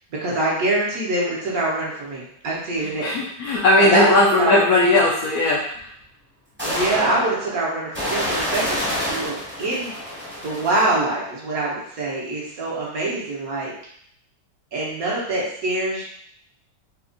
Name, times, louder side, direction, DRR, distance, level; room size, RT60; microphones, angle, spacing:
voice 1, 0.2-3.1 3.8-5.0 6.6-9.9 10.4-13.7 14.7-16.0, right 2 dB, 60° right, -5 dB, 1.2 m, -24 dB
voice 2, 3.0-5.9, left 2 dB, 70° left, -4 dB, 0.9 m, -18 dB
sound 1, 5.8-5.9 6.6-11.3, equal, 10° right, 0.7 m, -28 dB
4.3 x 2.3 x 2.5 m, 0.66 s
omnidirectional pair, 2.0 m